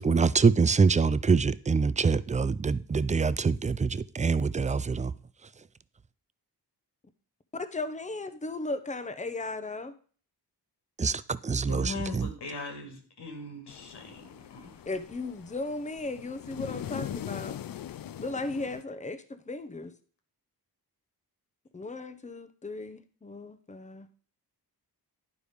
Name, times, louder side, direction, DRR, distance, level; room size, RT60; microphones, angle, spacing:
voice 1, 0.0-5.1 11.0-12.3, right 5 dB, 20° right, 0.3 m, -25 dB
voice 2, 7.5-9.9 14.9-17.6 18.2-19.9 21.7-24.1, left 2 dB, 20° left, 0.8 m, -36 dB
voice 3, 11.7-14.8, left 3 dB, 90° left, 2.3 m, -40 dB
sound 1, 13.7-18.8, left 10 dB, 60° left, 0.5 m, -41 dB
11.0 x 4.9 x 5.1 m
wide cardioid pair, 105°, 39 cm